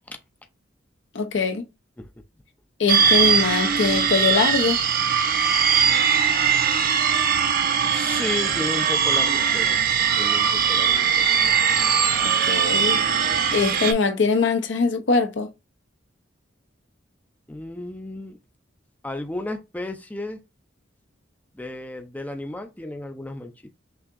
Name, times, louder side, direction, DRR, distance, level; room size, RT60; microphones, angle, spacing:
voice 1, 1.1-1.7 2.8-4.8 12.2-13.0 13.5-15.5, left 4 dB, 65° left, 0.6 m, -22 dB
sound 1, 2.9-13.9, right 7 dB, 50° right, 0.7 m, -20 dB
voice 2, 7.9-9.8 10.2-11.3 17.5-18.4 19.0-20.4 21.5-23.5, left 1 dB, 10° left, 0.4 m, -33 dB
5.9 x 2.8 x 2.5 m
head